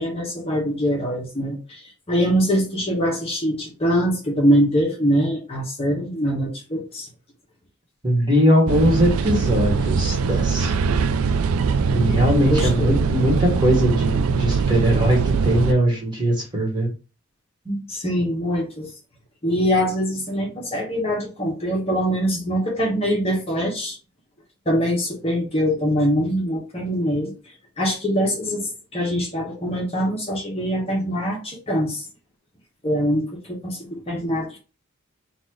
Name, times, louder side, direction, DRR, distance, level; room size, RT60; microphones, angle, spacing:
voice 1, 0.0-7.1 12.4-13.1 17.9-18.9 19.4-24.0 24.7-27.3 27.8-32.1 32.8-34.6, equal, 25° left, -2 dB, 1.0 m, -23 dB
voice 2, 8.0-10.8 11.9-16.9 17.6-17.8, equal, 20° right, -1 dB, 1.5 m, -20 dB
sound 1, 8.7-15.7, right 5 dB, 75° right, 0.4 m, -22 dB
4.1 x 2.5 x 4.5 m, 0.33 s
head